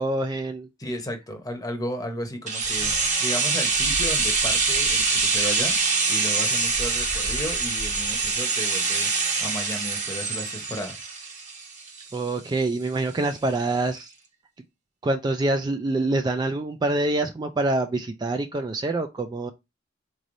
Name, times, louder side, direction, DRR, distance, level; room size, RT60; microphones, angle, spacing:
voice 1, 0.0-0.7 12.1-14.1 15.0-19.5, right 2 dB, 20° right, 0.3 m, -26 dB
voice 2, 0.8-5.8 6.1-11.0, equal, 20° left, 0.8 m, -34 dB
sound 1, 2.5-12.3 12.6-12.7, right 4 dB, 40° right, 1.2 m, -24 dB
4.0 x 3.1 x 2.5 m
head